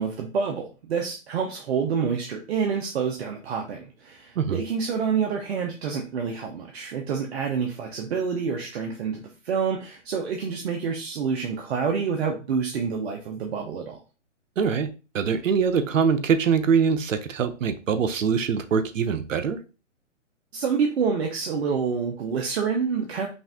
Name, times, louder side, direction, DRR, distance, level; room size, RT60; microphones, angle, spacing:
voice 1, 0.0-14.0 20.5-23.3, right 6 dB, 55° right, 2 dB, 1.0 m, -27 dB
voice 2, 14.6-14.9 15.1-19.6, right 6 dB, 80° right, 9 dB, 0.8 m, -23 dB
5.4 x 2.6 x 3.5 m, 0.32 s
hypercardioid pair, 150°, 38 cm